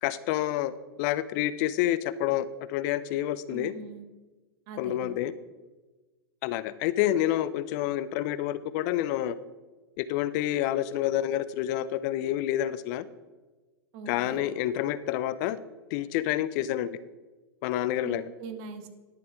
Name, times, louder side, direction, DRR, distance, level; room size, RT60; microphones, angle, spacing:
voice 1, 0.0-3.7 4.8-5.3 6.4-9.4 10.0-13.1 14.1-15.6 15.9-17.0 17.6-18.3, left 13 dB, 50° left, 15 dB, 0.5 m, -28 dB
voice 2, 3.5-4.0 4.7-5.1 13.9-14.4 18.0-18.9, right 4 dB, 45° right, 7 dB, 1.4 m, -41 dB
11.0 x 7.2 x 4.5 m, 1.2 s
hypercardioid pair, 115°, 13 cm